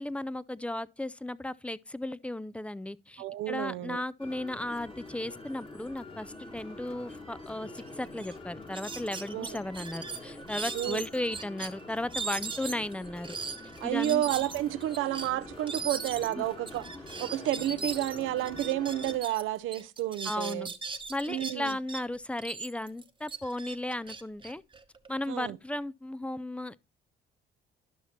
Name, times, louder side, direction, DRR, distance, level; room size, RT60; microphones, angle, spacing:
voice 1, 0.0-13.4 13.8-14.2 16.4-16.5 20.2-20.7 21.1-24.6 25.1-26.7, left 1 dB, 5° left, 0.3 m, -35 dB
voice 2, 3.2-4.0 9.3-9.6 10.7-11.0 13.8-16.8 17.2-20.7 21.3-21.8 25.3-25.6, right 14 dB, 85° right, 0.5 m, -31 dB
sound 1, 4.2-19.2, left 2 dB, 25° left, 1.6 m, -46 dB
sound 2, 7.8-7.9 8.2-8.3 8.7-11.7 12.1-19.4 19.7-22.0 22.4-25.3, right 4 dB, 25° right, 0.8 m, -39 dB
12.0 x 5.7 x 2.8 m
cardioid pair, 90°, 20 cm